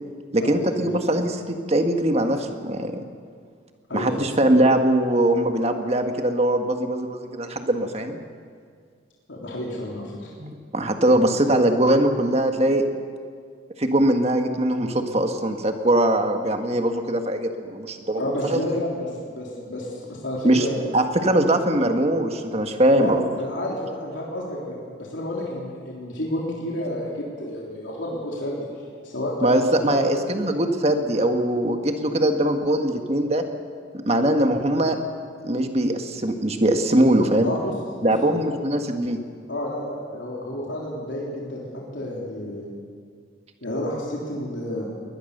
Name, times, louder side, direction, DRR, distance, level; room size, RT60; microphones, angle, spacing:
voice 1, 0.3-3.0 3.9-8.2 10.4-12.8 13.8-18.6 20.4-20.7 20.9-23.3 29.4-33.4 33.9-35.0 35.4-37.5 38.0-39.2, right 1 dB, 35° right, 5 dB, 1.6 m, -21 dB
voice 2, 3.9-4.3 9.3-10.3 18.2-21.0 22.9-28.7 29.0-30.1 37.4-38.7 39.5-42.7 43.6-44.9, left 1 dB, 80° left, -3 dB, 3.5 m, -30 dB
21.0 x 20.0 x 6.7 m, 2.1 s
head